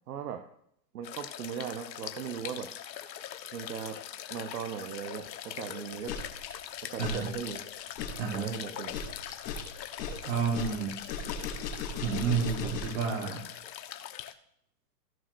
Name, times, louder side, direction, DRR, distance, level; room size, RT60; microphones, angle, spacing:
voice 1, 0.1-0.4 0.9-2.7 3.5-4.0 4.3-6.1 6.8-7.6 8.3-8.9, right 8 dB, 65° right, 6 dB, 1.1 m, -38 dB
sound 1, 1.0-14.3, left 10 dB, 85° left, 1.2 m, -42 dB
sound 2, 5.9-13.0, left 5 dB, 30° left, 3.4 m, -38 dB
voice 2, 7.0-7.3 8.2-8.5 10.2-11.0 12.0-13.4, right 6 dB, 40° right, 0 dB, 2.8 m, -30 dB
17.0 x 6.3 x 2.6 m, 0.71 s
hypercardioid pair, 165°, 50 cm